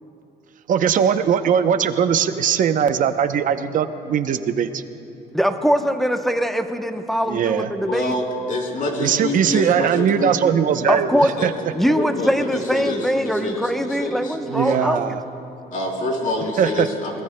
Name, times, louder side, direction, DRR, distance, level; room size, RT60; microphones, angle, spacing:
voice 1, 0.7-4.8 7.3-7.7 9.0-11.1 11.4-11.5 14.5-15.2 16.6-16.9, right 8 dB, 50° right, 10 dB, 0.7 m, -20 dB
voice 2, 5.3-8.1 10.9-15.2, equal, ahead, 6 dB, 0.8 m, -22 dB
voice 3, 7.9-10.4 11.1-11.5 11.9-14.9 15.7-17.2, left 2 dB, 55° left, -1 dB, 3.4 m, -27 dB
24.0 x 20.0 x 2.2 m, 2.9 s
cardioid pair, 110°, 17 cm